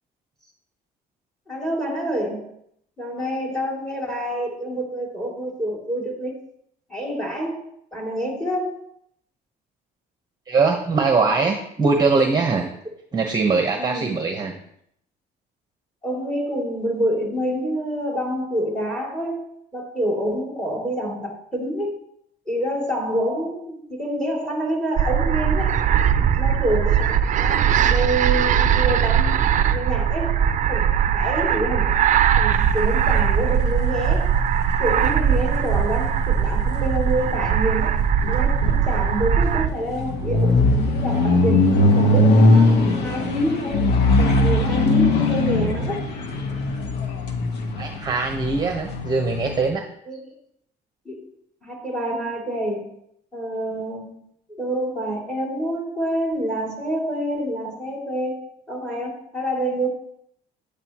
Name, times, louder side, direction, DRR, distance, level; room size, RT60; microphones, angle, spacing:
voice 1, 1.5-2.4 3.0-6.3 6.9-7.6 7.9-8.8 13.8-14.1 16.0-19.4 19.7-22.0 22.5-25.8 26.2-29.4 29.7-30.4 30.7-32.0 32.3-34.3 34.8-40.7 40.9-43.8 44.2-46.0 50.1-50.3 51.0-51.3 51.6-52.9 53.3-54.2 54.5-59.9, right 1 dB, 5° left, 0 dB, 2.9 m, -27 dB
voice 2, 10.5-12.7 13.1-14.5 47.8-49.8, right 4 dB, 25° right, 3 dB, 1.1 m, -21 dB
sound 1, 25.0-39.7, right 8 dB, 50° right, 0.5 m, -20 dB
sound 2, 32.5-49.7, left 2 dB, 90° left, 1.3 m, -21 dB
10.0 x 9.2 x 3.0 m, 0.72 s
cardioid pair, 110°, 17 cm